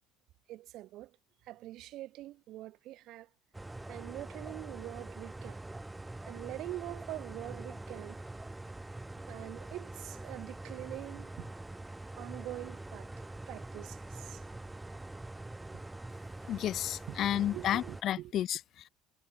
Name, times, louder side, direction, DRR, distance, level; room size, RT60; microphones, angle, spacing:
voice 1, 0.5-1.2 1.4-3.3 3.9-5.6 6.2-8.2 9.3-11.5 12.2-14.4 15.7-15.8 17.1-18.3, right 15 dB, 65° right, 6.5 m, -44 dB
sound 1, 3.5-18.0, right 2 dB, 10° right, 6.0 m, -44 dB
voice 2, 16.5-18.9, left 11 dB, 55° left, 2.9 m, -32 dB
supercardioid pair, 100°, 0 cm